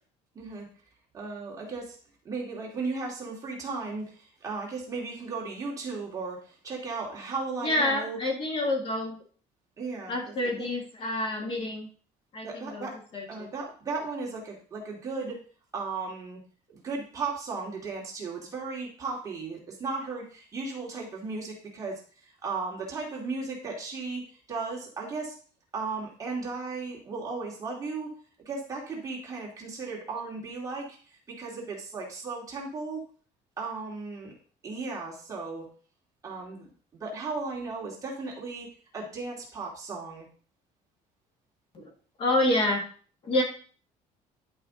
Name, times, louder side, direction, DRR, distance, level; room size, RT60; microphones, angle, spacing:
voice 1, 0.3-0.7 1.1-2.0 2.2-8.2 9.8-10.7 11.4-11.6 12.4-13.0 13.3-15.4 15.7-16.4 16.7-25.4 25.7-28.1 28.5-31.0 31.3-33.0 33.6-34.3 34.6-35.6 36.2-40.3, right 4 dB, 20° right, -3 dB, 2.4 m, -36 dB
voice 2, 7.6-9.2 10.1-11.9 12.3-12.9 13.1-13.5 41.7-41.9 42.2-42.9 43.2-43.4, left 1 dB, 35° left, 1 dB, 1.8 m, -28 dB
11.0 x 4.9 x 3.8 m, 0.42 s
cardioid pair, 175°, 15 cm